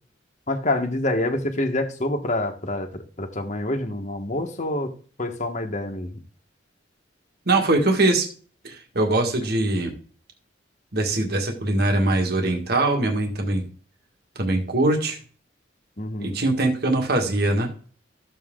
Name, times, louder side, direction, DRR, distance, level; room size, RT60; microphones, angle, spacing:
voice 1, 0.5-4.9 5.2-6.2 16.0-16.4, left 1 dB, 40° left, 4 dB, 1.5 m, -27 dB
voice 2, 7.5-8.3 8.6-9.9 10.9-13.6 14.4-15.2 16.2-17.7, right 2 dB, 60° right, 3 dB, 1.9 m, -22 dB
13.5 x 7.5 x 3.8 m, 0.42 s
head